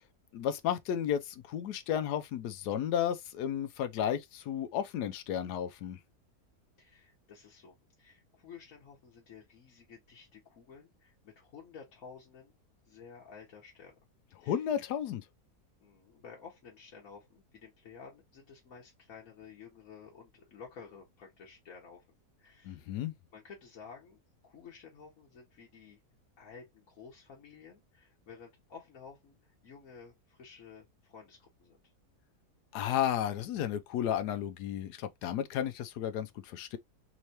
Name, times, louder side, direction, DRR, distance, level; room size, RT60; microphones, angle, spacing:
voice 1, 0.3-6.0 14.4-15.2 22.6-23.1 32.7-36.8, left 10 dB, 85° left, 1.2 m, -33 dB
voice 2, 6.8-12.6 12.8-13.9 14.4-14.6 15.8-22.1 22.4-22.9 23.3-24.2 24.4-26.0 26.4-31.8, left 6 dB, 60° left, 1.4 m, -52 dB
3.6 x 3.2 x 2.8 m
omnidirectional pair, 1.7 m